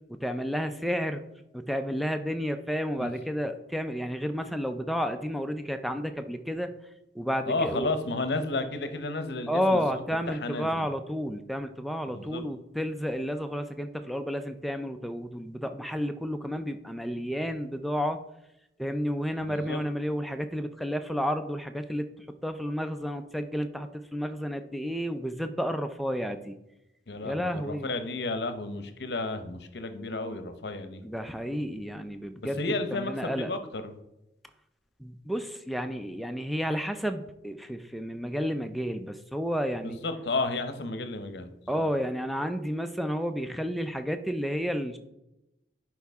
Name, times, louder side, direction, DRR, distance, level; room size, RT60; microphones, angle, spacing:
voice 1, 0.1-1.2 1.5-6.7 7.1-7.9 9.5-18.2 18.8-22.1 22.4-26.6 27.2-27.9 31.0-32.6 32.9-33.5 35.0-40.0 41.7-45.0, equal, ahead, 7 dB, 0.4 m, -31 dB
voice 2, 7.5-10.9 12.1-12.5 19.4-19.8 27.1-31.0 32.4-33.9 39.8-41.5, left 2 dB, 65° left, 9 dB, 0.8 m, -32 dB
11.0 x 4.7 x 3.5 m, 0.90 s
head